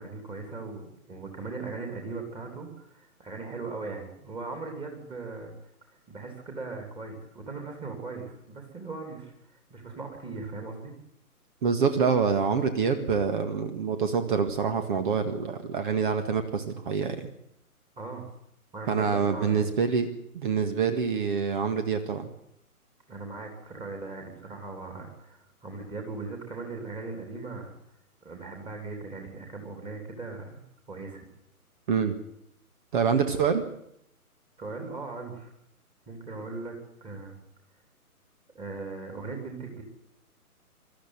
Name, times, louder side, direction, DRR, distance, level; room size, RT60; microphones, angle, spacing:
voice 1, 0.0-5.5 6.1-10.9 18.0-18.3 18.7-19.7 23.1-27.7 28.2-30.6 30.9-31.2 34.6-35.5 36.1-37.3 38.5-39.8, right 3 dB, 10° right, 3 dB, 3.2 m, -39 dB
voice 2, 11.6-17.3 18.9-20.1 20.3-22.3 31.9-32.1 32.9-33.7, right 6 dB, 35° right, 9 dB, 1.8 m, -26 dB
22.0 x 13.0 x 9.7 m, 0.74 s
figure-of-eight pair, 140°, 45 cm